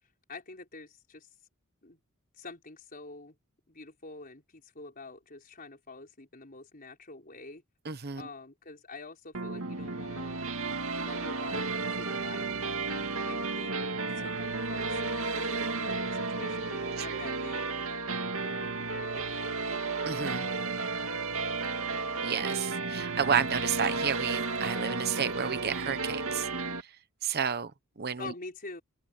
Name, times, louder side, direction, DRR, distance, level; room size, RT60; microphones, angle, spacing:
voice 1, 0.3-1.3 1.8-2.0 2.4-3.4 3.7-7.6 8.2-10.4 11.0-13.9 14.2-17.7 18.4-19.6 28.2-28.8, left 3 dB, 40° left, 4.9 m, -46 dB
voice 2, 7.8-8.3 17.0-17.2 20.1-20.5 22.2-26.5 27.2-27.7 28.0-28.3, right 7 dB, 45° right, 0.9 m, -31 dB
sound 1, 9.3-26.8, right 3 dB, 75° right, 2.2 m, -33 dB
open air
head